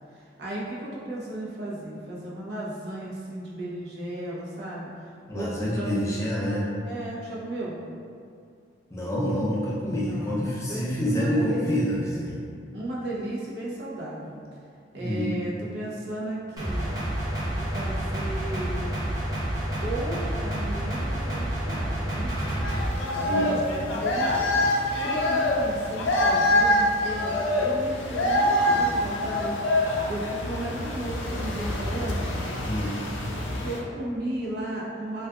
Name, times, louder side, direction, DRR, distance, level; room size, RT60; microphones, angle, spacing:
voice 1, 0.1-4.9 5.3-5.9 6.4-7.8 10.0-11.6 12.7-14.4 14.9-16.9 17.5-18.9 19.8-22.3 23.1-24.6 25.0-32.5 33.6-35.3, right 1 dB, 60° right, -6 dB, 0.5 m, -35 dB
voice 2, 5.3-6.7 8.9-12.4 15.0-15.4 23.3-23.5 29.9-30.0 32.6-33.0, equal, 15° left, -6 dB, 0.4 m, -27 dB
sound 1, 16.6-22.9, right 1 dB, 20° right, 0.6 m, -29 dB
sound 2, 22.6-33.8, left 1 dB, 85° left, 0.4 m, -25 dB
2.6 x 2.3 x 2.3 m, 2.3 s
head